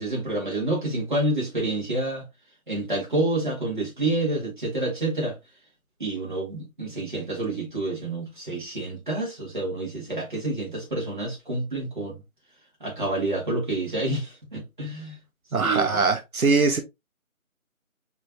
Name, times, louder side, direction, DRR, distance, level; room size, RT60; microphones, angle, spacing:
voice 1, 0.0-2.2 2.7-5.3 6.0-12.2 12.8-15.1 15.6-15.9, right 2 dB, 35° right, 2.0 m, -28 dB
voice 2, 15.5-16.8, right 4 dB, 80° right, 0.9 m, -21 dB
4.9 x 3.3 x 2.6 m
figure-of-eight pair, 180°, 42 cm